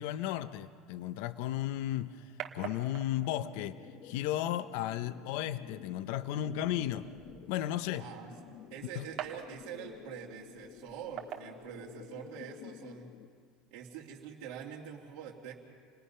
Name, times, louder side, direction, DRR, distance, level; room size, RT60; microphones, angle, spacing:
voice 1, 0.0-3.8 4.0-7.1 7.5-8.1 9.0-9.1, left 12 dB, 70° left, 12 dB, 0.7 m, -34 dB
sound 1, 1.4-12.4, right 10 dB, 40° right, 1.7 m, -49 dB
sound 2, 3.3-13.3, left 10 dB, 50° left, 1.2 m, -52 dB
voice 2, 8.0-8.3 8.7-13.1 13.7-15.5, right 8 dB, 60° right, -5 dB, 2.4 m, -45 dB
28.5 x 21.0 x 5.7 m, 2.1 s
cardioid pair, 170°, 0 cm